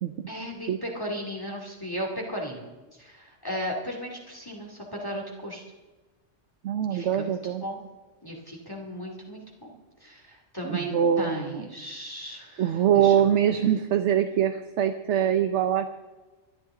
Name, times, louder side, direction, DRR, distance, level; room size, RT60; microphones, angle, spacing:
voice 1, 0.3-2.6 3.0-5.6 6.9-7.8 8.2-9.7 10.0-12.7 13.0-13.1, equal, 20° left, -1 dB, 2.3 m, -36 dB
voice 2, 6.6-7.6 10.6-11.7 12.6-15.9, right 9 dB, 70° right, 8 dB, 1.0 m, -23 dB
24.0 x 11.0 x 3.8 m, 1.2 s
omnidirectional pair, 1.3 m